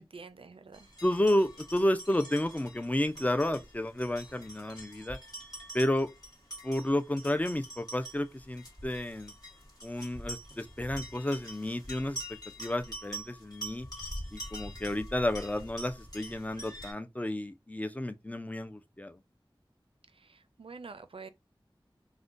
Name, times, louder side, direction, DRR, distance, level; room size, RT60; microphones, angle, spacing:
voice 1, 0.0-0.9 20.1-21.3, right 4 dB, 85° right, 0.4 m, -47 dB
sound 1, 0.7-16.9, equal, 45° left, 1.3 m, -45 dB
voice 2, 1.0-5.2 5.7-6.1 6.6-9.3 9.8-12.2 12.6-13.9 14.3-19.2, left 1 dB, 15° left, 0.4 m, -31 dB
3.6 x 2.1 x 2.5 m
wide cardioid pair, 40°, 9 cm